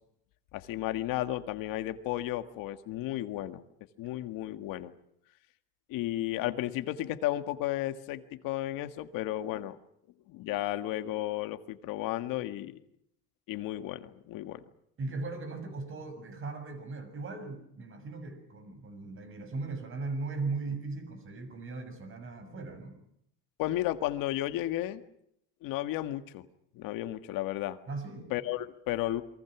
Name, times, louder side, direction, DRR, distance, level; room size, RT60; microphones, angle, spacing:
voice 1, 0.5-3.6 4.0-4.9 5.9-9.8 10.3-12.8 13.5-14.6 23.6-25.0 25.6-26.5 26.7-27.8 28.3-29.2, left 14 dB, 80° left, 10 dB, 1.8 m, -33 dB
voice 2, 15.0-23.0 27.9-28.3, right 3 dB, 40° right, 7 dB, 6.8 m, -38 dB
28.0 x 23.0 x 6.1 m, 0.74 s
cardioid pair, 135°, 33 cm